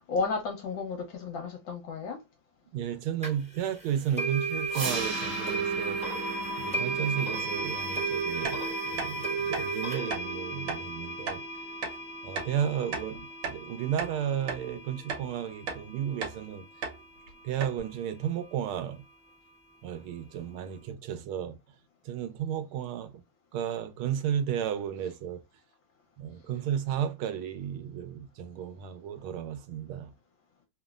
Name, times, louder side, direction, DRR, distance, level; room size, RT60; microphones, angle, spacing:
voice 1, 0.1-2.2, left 4 dB, 70° left, 1.5 m, -32 dB
voice 2, 2.7-6.0 6.6-11.4 12.2-13.2 13.5-16.7 17.4-19.0 19.8-21.6 22.1-23.1 23.5-25.4 26.2-30.1, right 9 dB, 90° right, 1.5 m, -33 dB
sound 1, 3.2-3.3 4.2-15.1, right 3 dB, 5° right, 0.5 m, -34 dB
sound 2, 4.7-10.7, right 4 dB, 55° right, 0.9 m, -40 dB
sound 3, 8.4-8.6 9.0-9.1 9.5-9.7 10.1-10.2 10.7-10.8 11.3-11.4 11.8-12.0 12.4-12.5 12.9-13.6 14.0-14.1 14.5-14.6 15.1-15.3 15.7-15.8 16.2-16.4 16.8-17.0 17.3-17.4 17.6-17.8, right 5 dB, 70° right, 1.6 m, -35 dB
3.6 x 2.0 x 2.3 m
omnidirectional pair, 2.2 m